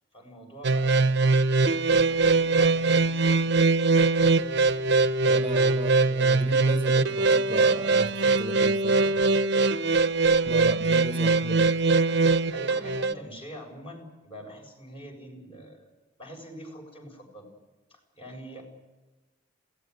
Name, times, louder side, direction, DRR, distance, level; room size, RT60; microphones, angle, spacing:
voice 1, 0.1-1.1 1.9-3.6 12.5-15.9 16.2-17.5 17.9-18.6, equal, 30° left, 2 dB, 7.0 m, -44 dB
sound 1, 0.6-13.1, right 3 dB, 65° right, 0.9 m, -22 dB
voice 2, 5.2-9.4 10.4-11.7 13.1-13.2, right 2 dB, 25° right, 6 dB, 1.1 m, -35 dB
21.5 x 17.5 x 9.6 m, 1.1 s
head